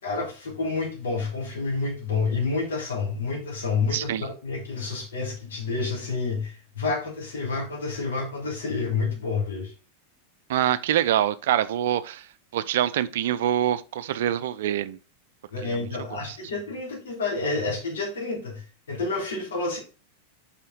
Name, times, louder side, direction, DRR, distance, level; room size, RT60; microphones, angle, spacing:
voice 1, 0.0-4.1 4.4-9.7 15.5-18.6 18.9-19.8, left 4 dB, 65° left, 3.0 m, -29 dB
voice 2, 3.9-4.2 10.5-12.3 12.5-15.0 15.6-16.4, right 11 dB, 55° right, 0.5 m, -25 dB
5.5 x 5.0 x 5.0 m
figure-of-eight pair, 90°, 0 cm